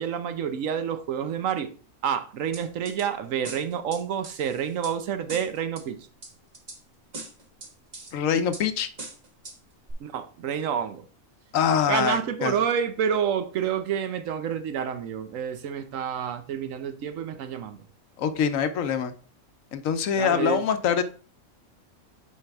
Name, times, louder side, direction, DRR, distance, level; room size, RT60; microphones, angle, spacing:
voice 1, 0.0-1.7 2.0-6.0 10.0-11.0 11.9-17.8 20.2-20.6, right 8 dB, 85° right, 1.1 m, -28 dB
sound 1, 2.5-3.1 3.4-4.9 5.3-5.8 6.2-6.8 7.1-8.1 8.5-8.7 9.0-9.6 9.9-10.0, right 3 dB, 35° right, 1.2 m, -40 dB
voice 2, 8.1-8.9 11.5-12.5 18.2-19.1 19.7-21.0, left 7 dB, 85° left, 1.2 m, -24 dB
7.5 x 4.7 x 3.5 m
omnidirectional pair, 1.3 m